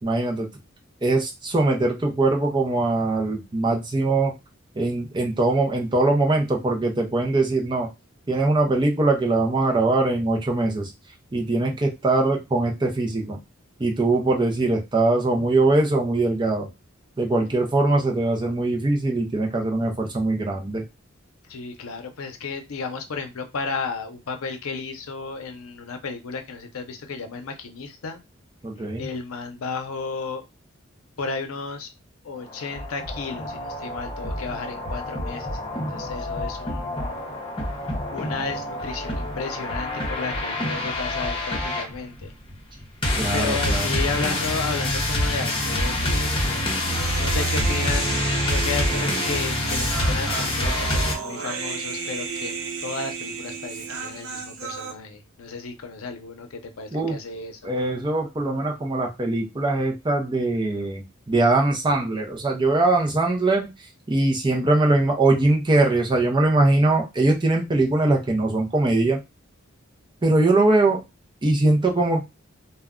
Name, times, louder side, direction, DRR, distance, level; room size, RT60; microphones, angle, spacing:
voice 1, 0.0-0.5 1.0-4.3 4.8-7.9 8.3-10.9 11.3-13.4 13.8-16.7 17.2-20.8 28.6-29.0 43.2-43.9 56.9-57.2 57.6-63.7 64.1-69.2 70.2-71.0 71.4-72.2, right 2 dB, 20° right, 1 dB, 0.5 m, -21 dB
voice 2, 21.5-28.2 29.0-30.4 31.2-31.9 32.2-37.2 38.1-42.3 43.3-46.7 47.2-57.7, left 4 dB, 85° left, 6 dB, 0.6 m, -33 dB
sound 1, 32.4-51.1, left 1 dB, 25° left, 0.7 m, -26 dB
Human voice, 46.9-54.9, right 5 dB, 75° right, 0.5 m, -33 dB
2.2 x 2.1 x 3.6 m, 0.24 s
head